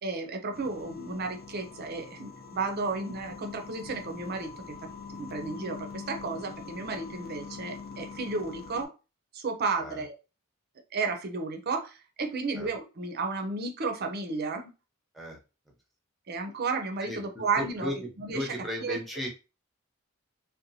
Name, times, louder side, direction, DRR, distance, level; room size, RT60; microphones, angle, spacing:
voice 1, 0.0-4.8 5.1-8.9 9.3-10.1 10.9-14.7 16.3-18.5 18.8-19.0, right 4 dB, 45° right, 4 dB, 0.5 m, -33 dB
sound 1, 0.5-8.9, left 5 dB, 45° left, 0.5 m, -44 dB
voice 2, 17.0-19.3, left 1 dB, ahead, -1 dB, 0.7 m, -36 dB
2.8 x 2.2 x 2.6 m, 0.30 s
head